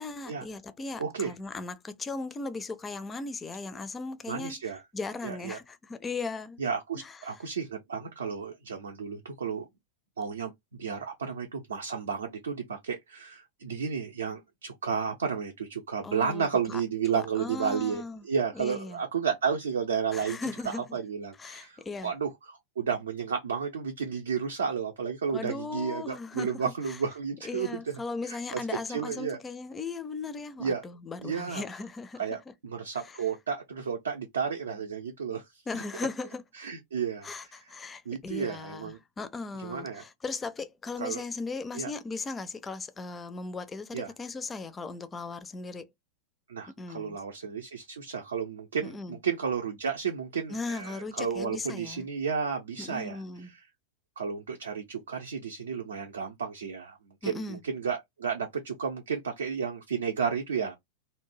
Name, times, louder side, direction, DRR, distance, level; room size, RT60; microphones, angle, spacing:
voice 1, 0.0-4.6 4.9-6.6 7.0-7.4 16.0-16.8 17.1-18.2 18.5-19.0 20.1-21.0 21.4-22.1 25.3-26.5 26.9-27.0 27.4-32.2 33.0-33.2 35.7-36.4 37.2-45.9 46.7-47.2 48.8-49.2 50.5-52.1 52.8-53.5 57.2-57.6, left 3 dB, 15° left, 0.4 m, -37 dB
voice 2, 1.0-1.3 4.3-4.8 5.2-5.6 6.6-9.7 10.2-10.5 10.8-20.4 20.7-27.9 28.3-29.4 30.6-30.9 31.2-31.6 32.2-35.8 36.6-37.7 38.1-39.0 39.6-40.0 41.0-41.2 41.7-41.9 43.9-44.1 46.5-53.6 54.2-57.0 57.2-60.8, right 6 dB, 70° right, 0.5 m, -32 dB
2.7 x 2.1 x 3.0 m
figure-of-eight pair, 90°, 0 cm